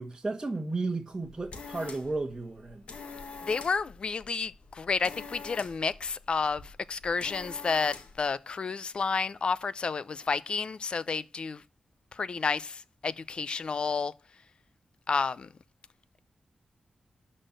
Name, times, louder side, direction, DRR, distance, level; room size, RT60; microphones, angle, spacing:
voice 1, 0.0-2.8, right 3 dB, 20° right, 1.6 m, -33 dB
sound 1, 1.1-8.3, left 4 dB, 70° left, 1.5 m, -46 dB
voice 2, 3.5-11.6 12.1-14.1 15.1-15.5, left 5 dB, 50° left, 0.6 m, -31 dB
12.5 x 4.3 x 7.8 m
wide cardioid pair, 120°, 2 cm